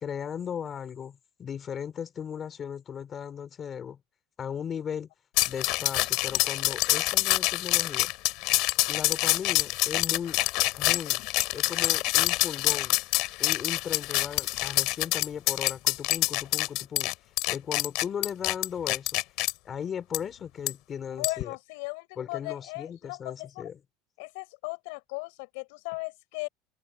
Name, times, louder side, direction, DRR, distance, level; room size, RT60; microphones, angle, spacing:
voice 1, 0.0-4.0 4.4-5.1 5.4-8.1 8.9-10.4 10.8-11.2 11.5-13.0 13.4-17.1 17.5-19.2 19.6-21.6 22.2-23.8, left 8 dB, 30° left, 4.3 m, -37 dB
sound 1, 5.4-19.5 20.1-20.2 20.7-20.8 21.2-21.4, left 22 dB, 60° left, 3.5 m, -26 dB
voice 2, 21.1-23.7 24.2-26.5, left 30 dB, 80° left, 7.8 m, -37 dB
cardioid pair, 150°, 0 cm